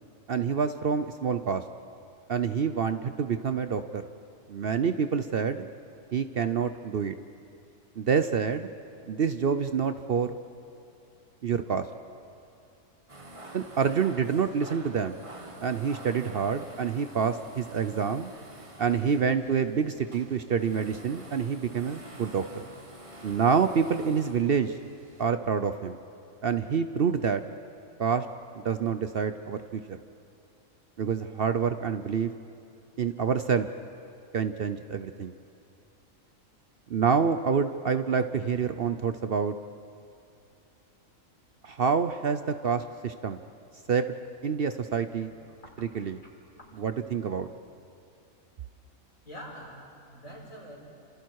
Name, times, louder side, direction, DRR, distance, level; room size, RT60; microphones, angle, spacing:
voice 1, 0.3-1.6 2.3-4.0 4.5-5.7 6.1-7.1 8.0-8.7 9.1-10.4 11.4-11.9 13.5-15.2 15.6-18.3 18.8-22.7 23.2-24.8 25.2-26.0 26.4-27.4 28.0-28.3 28.5-29.8 31.0-32.3 33.0-33.7 34.3-35.3 36.9-39.6 41.6-43.4 43.9-44.1 44.4-45.3 45.8-46.2 46.8-47.5, right 6 dB, 55° right, 10 dB, 0.7 m, -27 dB
sound 1, 13.1-25.2, right 1 dB, 25° right, 1.4 m, -48 dB
voice 2, 49.2-50.8, equal, 75° left, -3 dB, 5.6 m, -45 dB
29.5 x 26.5 x 4.7 m, 2.6 s
omnidirectional pair, 1.4 m